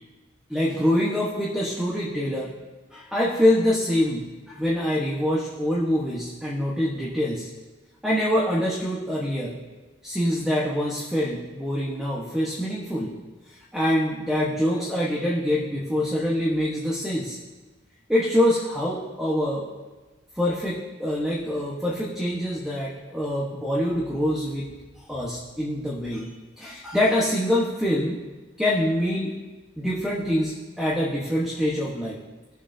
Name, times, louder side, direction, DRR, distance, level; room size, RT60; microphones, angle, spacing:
voice 1, 0.5-2.5 2.9-7.5 8.0-9.6 10.0-13.1 13.5-17.4 18.1-19.7 20.3-24.7 25.1-26.2 26.6-28.2 28.6-29.3 29.8-32.2, left 1 dB, 5° right, -6 dB, 1.2 m, -25 dB
18.5 x 7.1 x 2.7 m, 1.2 s
head